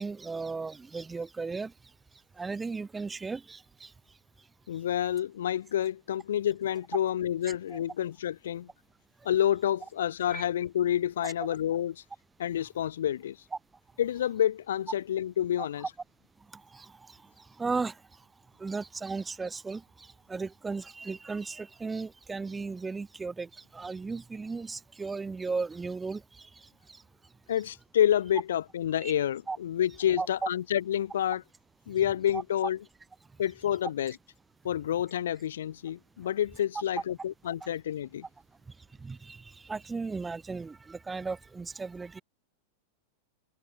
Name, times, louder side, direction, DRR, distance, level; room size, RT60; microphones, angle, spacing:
voice 1, 0.0-1.7 2.4-3.9 7.7-7.8 10.3-10.4 11.2-11.3 16.7-17.2 17.6-18.0 18.6-26.5 26.9-27.0 29.0-29.1 29.5-29.6 30.2-30.5 32.3-32.4 37.6-37.7 39.0-42.2, right 4 dB, 10° right, 2.2 m, -36 dB
voice 2, 4.7-8.7 9.2-12.0 12.4-13.4 14.0-15.8 27.5-31.4 31.9-32.8 33.4-34.1 34.6-38.2, left 10 dB, 60° left, 1.1 m, -29 dB
figure-of-eight pair, 90°, 0 cm